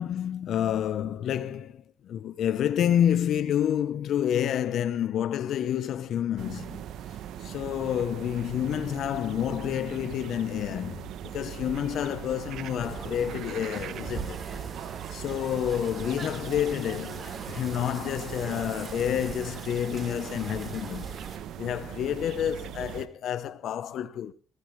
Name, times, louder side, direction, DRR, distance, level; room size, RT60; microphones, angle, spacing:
voice 1, 0.0-6.8 7.4-14.4 15.1-21.1 21.6-24.3, left 10 dB, 75° left, 1.0 m, -29 dB
sound 1, 6.4-23.1, right 10 dB, 80° right, 1.0 m, -40 dB
sound 2, 12.8-21.4, right 4 dB, 40° right, 4.0 m, -42 dB
21.0 x 15.0 x 3.3 m
cardioid pair, 90°, 0 cm